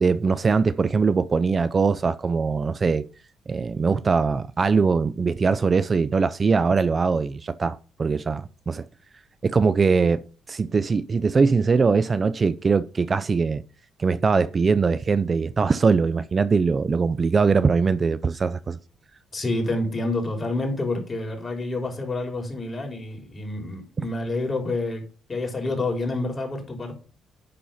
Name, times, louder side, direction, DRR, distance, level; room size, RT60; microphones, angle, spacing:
voice 1, 0.0-3.0 3.5-8.8 9.4-10.2 10.5-13.6 14.0-18.8 24.0-24.1, right 4 dB, 35° right, 0.5 m, -21 dB
voice 2, 19.3-25.0 25.3-27.0, left 2 dB, 30° left, 3.6 m, -28 dB
10.5 x 4.2 x 5.7 m
cardioid pair, 90°, 0 cm